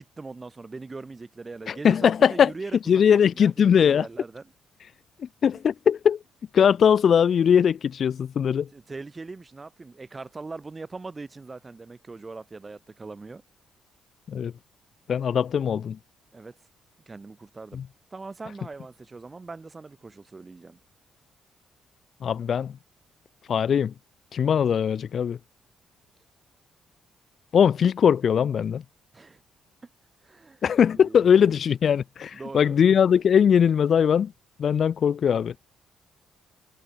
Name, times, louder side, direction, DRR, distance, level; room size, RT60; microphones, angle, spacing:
voice 1, 0.0-4.5 8.7-13.4 16.3-16.6 17.1-17.8 18.1-20.8 29.1-29.4 30.2-30.6 30.9-31.6 32.3-32.8, right 3 dB, 25° right, 6.5 m, -41 dB
voice 2, 1.7-2.5 2.9-4.1 5.2-6.2 6.5-8.7 14.3-14.5 15.1-16.0 17.7-17.8 22.2-22.7 23.5-23.9 24.3-25.4 27.5-28.8 30.6-34.3 34.6-35.5, left 8 dB, 55° left, 0.6 m, -20 dB
cardioid pair, 90°, 0 cm